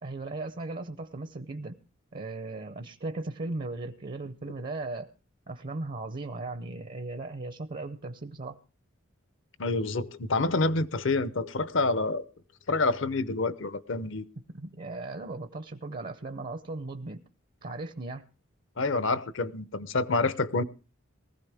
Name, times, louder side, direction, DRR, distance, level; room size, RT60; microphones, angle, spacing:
voice 1, 0.0-1.8 2.1-5.1 5.5-8.6 14.5-17.2 17.6-18.2, right 2 dB, 45° right, 0.6 m, -37 dB
voice 2, 9.6-12.2 12.7-14.2 18.8-20.6, left 3 dB, 65° left, 0.7 m, -27 dB
19.5 x 15.0 x 3.5 m
head